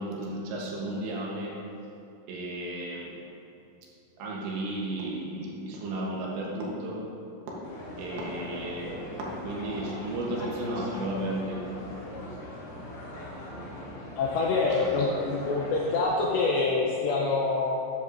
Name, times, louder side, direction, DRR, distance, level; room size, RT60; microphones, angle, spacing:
voice 1, 0.0-1.6 2.3-3.2 4.2-7.0 7.5-7.7 8.0-11.6, right 1 dB, 70° right, -3 dB, 3.1 m, -33 dB
sound 1, 7.6-16.0, left 1 dB, 55° left, 3.7 m, -41 dB
voice 2, 14.2-17.8, left 3 dB, 80° left, -2 dB, 2.5 m, -26 dB
13.0 x 10.5 x 2.6 m, 2.7 s
omnidirectional pair, 5.9 m